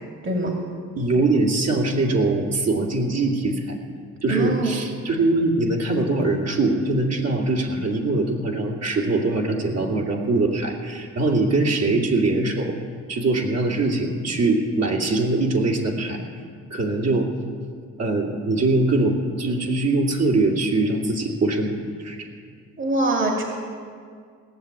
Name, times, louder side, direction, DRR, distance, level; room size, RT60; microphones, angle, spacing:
voice 1, 1.0-3.8 4.2-12.7 13.1-16.2 16.7-17.3 18.0-21.7 22.0-22.2, right 2 dB, 60° right, -2 dB, 2.6 m, -22 dB
voice 2, 4.3-4.7 22.8-23.4, right 2 dB, 40° right, 1 dB, 2.4 m, -23 dB
18.0 x 7.1 x 9.6 m, 2.1 s
cardioid pair, 90°, 30 cm